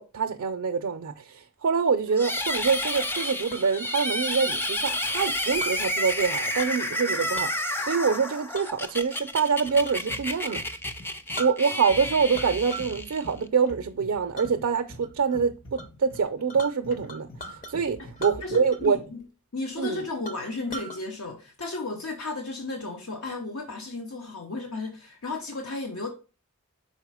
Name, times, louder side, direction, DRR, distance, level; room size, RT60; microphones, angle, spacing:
voice 1, 0.0-10.7 11.4-19.0 19.8-20.1, right 5 dB, 70° right, 0.4 m, -26 dB
sound 1, 2.2-13.5, left 1 dB, 10° left, 0.4 m, -30 dB
Chink clink, 3.2-3.7 4.9-5.8 6.6-6.9 7.2-7.5 8.5-10.1 10.4-10.6 11.0-11.1 11.3-12.0 12.3-13.0 13.4-13.7 14.3-14.5 15.0-15.4 15.8-17.7 18.1-18.9 19.2-19.3 19.8-19.9 20.2-21.0, right 1 dB, 40° left, 0.7 m, -40 dB
sound 2, 9.6-19.2, equal, 55° left, 1.6 m, -46 dB
voice 2, 18.4-19.2 19.5-26.1, left 3 dB, 75° left, 0.9 m, -34 dB
5.5 x 4.1 x 4.7 m
head